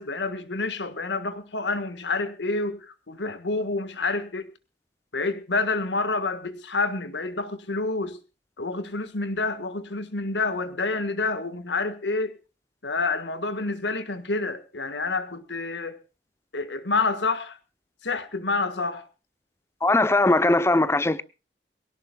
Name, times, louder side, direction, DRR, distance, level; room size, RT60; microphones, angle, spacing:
voice 1, 0.0-4.5 5.1-8.2 8.6-12.4 12.8-16.0 16.5-17.6 18.0-19.1, left 3 dB, 85° left, 1.6 m, -28 dB
voice 2, 19.8-21.2, left 2 dB, 15° left, 0.7 m, -20 dB
23.0 x 17.5 x 2.3 m
head